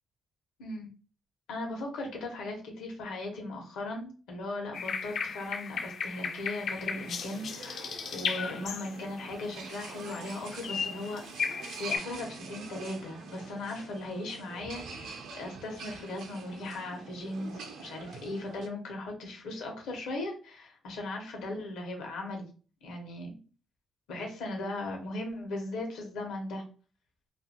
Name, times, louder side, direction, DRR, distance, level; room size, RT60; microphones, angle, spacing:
voice 1, 1.5-11.2 11.6-22.5 22.8-23.3 24.1-26.6, left 2 dB, 85° left, 1 dB, 1.0 m, -38 dB
sound 1, 4.7-9.2 9.7-10.3 10.6-12.0, left 6 dB, 65° left, 0.4 m, -35 dB
sound 2, 6.6-18.7, right 4 dB, 80° right, 0.5 m, -46 dB
2.6 x 2.5 x 2.8 m, 0.37 s
cardioid pair, 90°, 0 cm